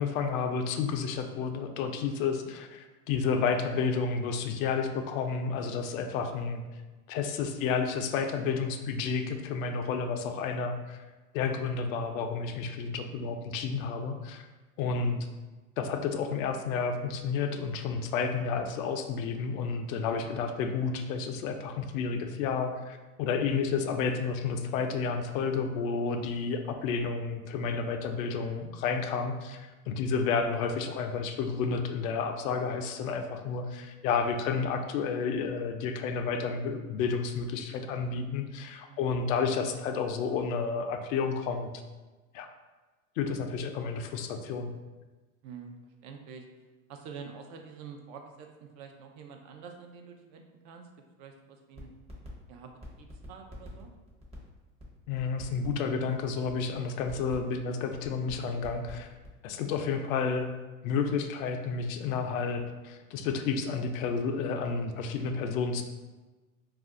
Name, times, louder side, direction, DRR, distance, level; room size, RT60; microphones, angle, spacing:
voice 1, 0.0-6.6 7.1-11.0 11.3-14.5 14.8-15.3 15.8-41.7 42.3-42.5 43.2-44.7 55.1-59.1 59.4-60.5 60.8-65.8, left 5 dB, 75° left, 6 dB, 0.5 m, -31 dB
voice 2, 14.8-15.2 23.4-23.7 33.7-33.9 38.9-39.2 45.4-46.4 46.9-50.9 51.2-51.9 52.5-53.9, right 6 dB, 50° right, 3 dB, 0.5 m, -48 dB
sound 1, 51.8-52.3 52.5-59.3, equal, 15° right, 0.7 m, -48 dB
2.4 x 2.2 x 3.6 m, 1.2 s
hypercardioid pair, 105°, 42 cm